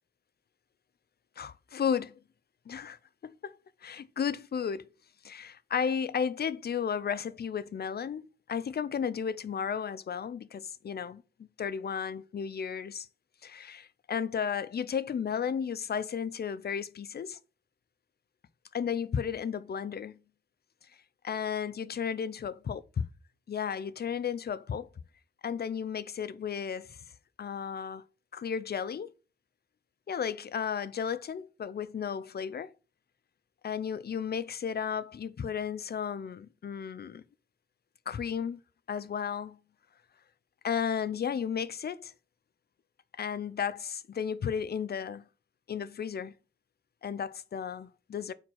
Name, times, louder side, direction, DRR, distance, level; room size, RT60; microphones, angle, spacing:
voice 1, 1.4-2.1 2.7-3.0 3.2-3.5 3.8-4.9 5.2-13.1 13.4-17.4 18.7-20.2 21.2-23.1 23.5-24.9 25.4-27.0 27.4-28.0 28.3-29.1 30.1-32.7 33.6-37.2 38.1-38.6 38.9-39.6 40.6-42.1 43.2-45.3 45.7-46.3 47.0-48.3, left 7 dB, 55° left, 0.4 m, -34 dB
4.5 x 4.4 x 5.8 m
wide cardioid pair, 115°, 20 cm